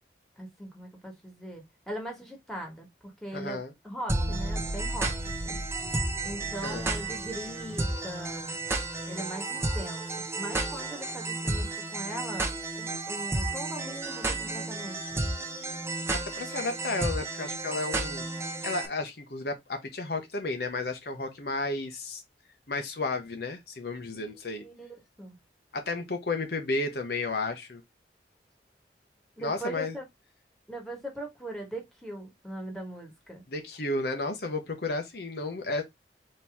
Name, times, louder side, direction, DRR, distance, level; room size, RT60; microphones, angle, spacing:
voice 1, 0.4-3.6 3.8-5.1 6.2-8.5 9.1-10.0 10.3-12.5 12.7-15.2 24.1-25.4 29.4-30.0 30.7-33.4, right 1 dB, ahead, 1.6 m, -40 dB
voice 2, 3.3-3.7 6.6-6.9 16.1-18.2 18.6-22.2 22.7-24.6 25.7-27.8 29.4-29.9 33.5-35.8, left 3 dB, 60° left, 0.9 m, -32 dB
sound 1, 4.1-18.9, right 2 dB, 15° right, 0.7 m, -32 dB
4.4 x 3.0 x 3.4 m
head